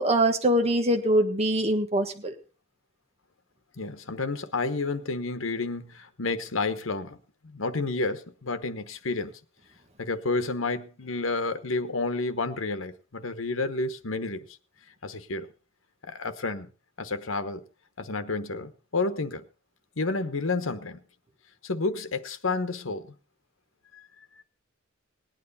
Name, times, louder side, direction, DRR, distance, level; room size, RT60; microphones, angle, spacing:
voice 1, 0.0-2.3, right 1 dB, 30° right, 1.4 m, -23 dB
voice 2, 3.8-7.2 7.4-9.3 10.0-14.5 15.0-15.5 16.0-16.7 17.0-17.6 18.0-19.5 20.0-21.0 21.6-23.1, left 3 dB, 75° left, 1.1 m, -30 dB
19.0 x 9.4 x 4.1 m
head